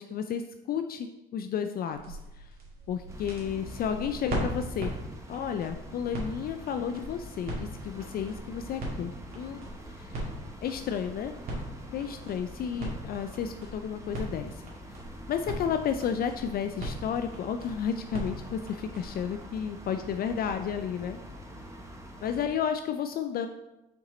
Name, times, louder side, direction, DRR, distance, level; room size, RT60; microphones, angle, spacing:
voice 1, 0.0-2.5 2.9-4.9 5.3-9.6 9.9-10.2 10.6-11.3 11.9-14.6 15.3-21.2 22.2-23.5, left 8 dB, 50° left, 8 dB, 0.4 m, -32 dB
sound 1, 1.9-19.4, right 1 dB, 45° right, 2.2 m, -40 dB
sound 2, 3.1-22.5, equal, 15° right, 1.1 m, -45 dB
5.9 x 4.2 x 3.9 m, 0.98 s
supercardioid pair, 95°, 20 cm